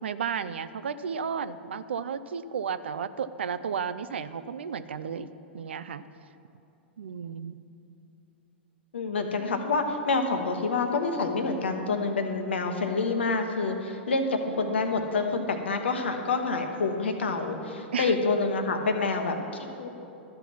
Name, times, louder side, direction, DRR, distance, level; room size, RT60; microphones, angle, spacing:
voice 1, 0.0-6.0 7.0-7.6 14.5-14.8 17.9-18.1, right 7 dB, 75° right, 14 dB, 0.4 m, -33 dB
voice 2, 8.9-19.9, left 3 dB, 75° left, 5 dB, 1.0 m, -27 dB
13.0 x 5.5 x 6.0 m, 2.8 s
figure-of-eight pair, 100°, 6 cm